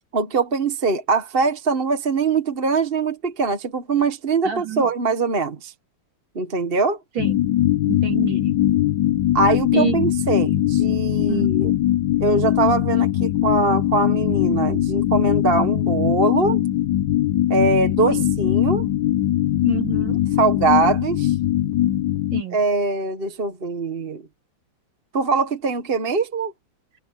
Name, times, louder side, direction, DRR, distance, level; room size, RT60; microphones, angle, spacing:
voice 1, 0.1-5.7 6.3-7.0 9.3-11.7 12.2-16.6 17.5-18.9 20.4-21.3 22.5-24.2 25.1-26.5, right 4 dB, 30° right, 1.4 m, -22 dB
voice 2, 4.4-4.9 7.2-7.3 7.9-8.5 9.7-10.0 11.3-11.5 18.1-18.2 19.6-20.2 22.3-22.6, right 10 dB, 70° right, 3.8 m, -27 dB
sound 1, 7.2-22.4, left 13 dB, 70° left, 1.4 m, -21 dB
omnidirectional pair, 2.1 m